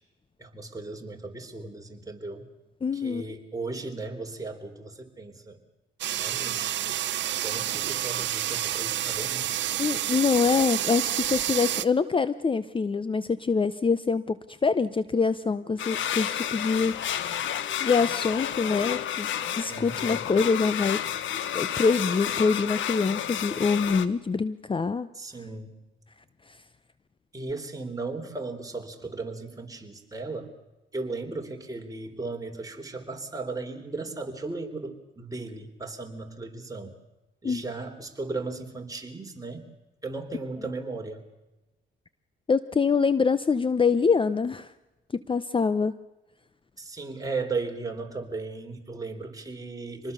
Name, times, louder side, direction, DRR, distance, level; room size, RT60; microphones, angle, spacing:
voice 1, 0.4-2.5 2.9-5.6 6.2-6.8 7.4-9.6 19.7-20.3 25.1-25.8 27.3-30.5 30.9-37.0 37.4-39.7 40.0-41.2 46.8-50.1, right 3 dB, 15° right, 3 dB, 3.8 m, -36 dB
voice 2, 2.8-3.2 9.8-14.4 14.6-17.4 17.8-19.3 19.6-21.0 21.5-25.1 26.5-26.6 37.4-37.6 42.5-44.7 45.1-46.0, left 5 dB, 25° left, 15 dB, 0.7 m, -25 dB
sound 1, 6.0-11.9, right 12 dB, 65° right, 0.8 m, -29 dB
sound 2, 15.8-24.1, left 10 dB, 75° left, 1.2 m, -31 dB
26.0 x 20.0 x 6.9 m, 1.0 s
cardioid pair, 90°, 20 cm